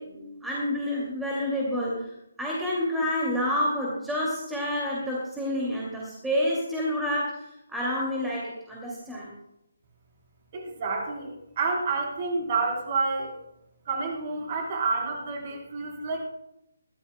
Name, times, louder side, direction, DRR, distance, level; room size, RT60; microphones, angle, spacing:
voice 1, 0.0-2.1 2.4-9.3, left 1 dB, 5° right, -5 dB, 2.4 m, -29 dB
voice 2, 10.5-13.3 13.9-16.2, right 4 dB, 35° right, 0 dB, 3.8 m, -29 dB
21.5 x 14.0 x 2.2 m, 0.84 s
figure-of-eight pair, 145°, 0 cm